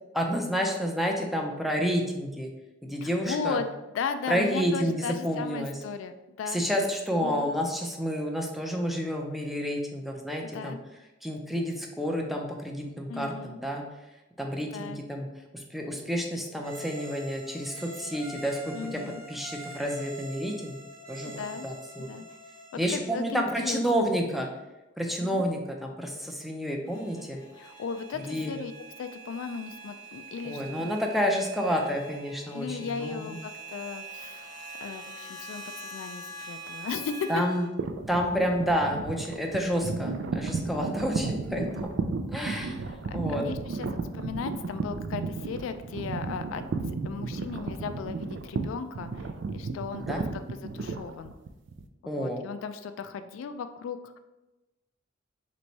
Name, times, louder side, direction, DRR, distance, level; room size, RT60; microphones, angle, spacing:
voice 1, 0.1-2.5 2.8-3.6 4.3-5.8 6.5-10.8 11.2-13.8 14.4-15.3 15.5-19.0 19.3-20.8 21.1-22.1 22.8-24.5 25.0-27.4 28.2-28.5 30.4-33.4 37.3-37.6 38.1-41.6 42.3-42.8 43.1-43.4 50.1-50.2 52.1-52.4, equal, ahead, 1 dB, 0.4 m, -29 dB
voice 2, 3.0-3.7 3.9-6.9 7.2-7.5 10.5-10.8 13.1-13.6 14.7-15.0 18.7-19.2 21.2-21.7 22.0-22.3 22.7-24.1 25.2-25.5 27.6-28.7 29.0-30.6 32.5-37.4 40.5-40.9 42.5-43.9 44.1-46.6 47.0-51.3 52.0-54.2, left 6 dB, 80° left, 10 dB, 0.3 m, -36 dB
sound 1, 16.6-23.3, right 1 dB, 20° right, 1.0 m, -44 dB
sound 2, 26.9-37.7, right 3 dB, 25° left, 0.8 m, -44 dB
sound 3, 37.8-51.8, right 4 dB, 65° right, 0.4 m, -33 dB
3.3 x 3.1 x 4.0 m, 1.0 s
head